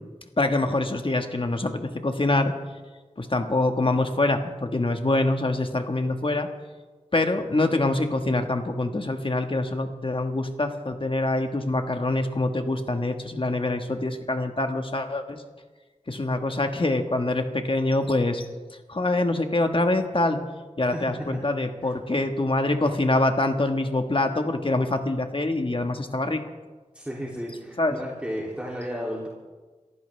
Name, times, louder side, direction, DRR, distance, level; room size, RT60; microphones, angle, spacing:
voice 1, 0.4-2.5 3.2-6.5 7.1-15.4 16.1-18.5 18.9-20.4 20.8-26.4 27.8-27.9, left 2 dB, 45° left, 5 dB, 1.6 m, -25 dB
voice 2, 20.9-21.4 21.8-22.0 26.9-29.3, equal, 10° right, -4 dB, 3.0 m, -33 dB
28.0 x 14.5 x 3.5 m, 1.3 s
wide cardioid pair, 65°, 12 cm